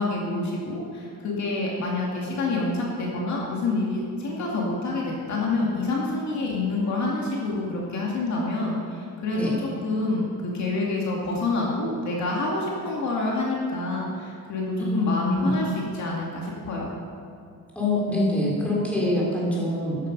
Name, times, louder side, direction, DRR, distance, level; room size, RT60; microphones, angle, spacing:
voice 1, 0.0-17.0, left 2 dB, 50° left, -3 dB, 2.4 m, -27 dB
voice 2, 14.8-15.6 17.8-20.0, left 1 dB, 5° left, -5 dB, 3.7 m, -25 dB
13.5 x 11.5 x 5.4 m, 2.4 s
cardioid pair, 170°, 37 cm